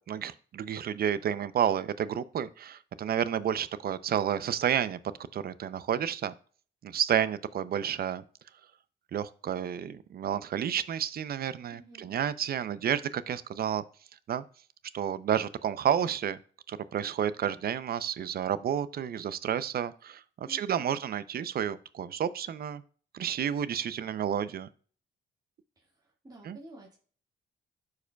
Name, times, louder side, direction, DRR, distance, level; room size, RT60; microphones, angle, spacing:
voice 1, 0.1-5.0 5.3-6.3 6.8-8.2 9.1-13.8 14.3-14.4 14.9-16.4 16.7-20.2 20.5-22.8 23.1-24.7 26.4-26.6, right 9 dB, 50° right, 16 dB, 0.5 m, -30 dB
voice 2, 11.7-12.2 20.4-21.0 25.8-27.0, right 1 dB, 20° right, -3 dB, 1.8 m, -52 dB
12.5 x 4.8 x 2.2 m, 0.43 s
cardioid pair, 90°, 20 cm